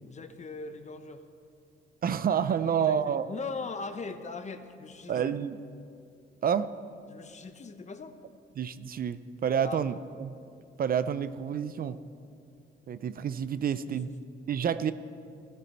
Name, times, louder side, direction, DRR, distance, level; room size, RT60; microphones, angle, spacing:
voice 1, 0.0-1.2 2.6-5.4 7.1-8.2 9.6-9.8 13.7-13.9, left 4 dB, 35° left, 9 dB, 0.9 m, -40 dB
voice 2, 2.0-3.3 5.1-5.6 6.4-6.7 8.6-10.3 10.8-12.0 12.9-14.1 14.5-14.9, right 8 dB, 45° right, 13 dB, 0.5 m, -29 dB
16.0 x 13.5 x 4.4 m, 2.4 s
cardioid pair, 90°, 20 cm